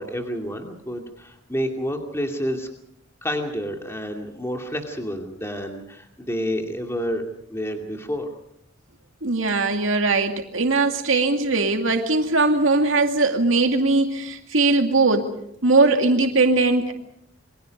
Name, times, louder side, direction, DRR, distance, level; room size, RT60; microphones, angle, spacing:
voice 1, 0.0-2.7 3.2-8.3, equal, 15° left, 3 dB, 2.4 m, -29 dB
voice 2, 9.2-15.3 15.6-16.9, right 3 dB, 85° right, 4 dB, 2.3 m, -20 dB
28.0 x 23.5 x 5.3 m, 0.73 s
head